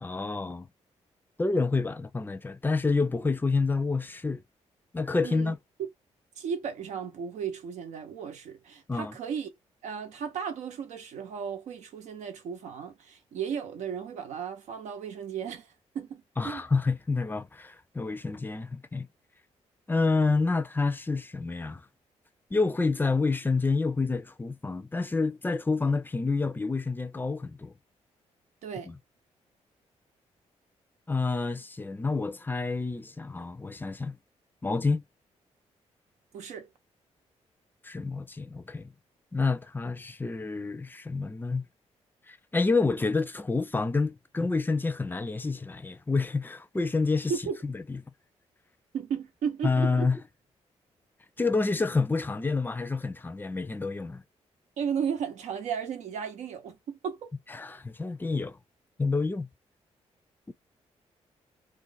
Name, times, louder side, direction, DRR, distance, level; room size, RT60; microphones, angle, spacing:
voice 1, 0.0-0.7 1.4-4.4 4.9-5.6 8.9-9.1 16.4-19.1 19.9-21.8 22.5-27.7 28.9-29.0 31.1-34.2 34.6-35.0 37.8-38.9 39.3-41.6 42.3-47.3 47.6-48.0 49.6-50.2 51.4-54.2 57.5-58.6 59.0-59.5 60.5-60.6, left 3 dB, 15° left, 0.5 m, -28 dB
voice 2, 5.2-5.5 6.4-9.5 9.8-15.7 15.9-16.6 28.6-28.9 36.3-36.7 47.3-47.6 48.9-50.1 54.8-57.3, right 7 dB, 85° right, 1.0 m, -35 dB
2.5 x 2.5 x 3.9 m
cardioid pair, 85°, 12 cm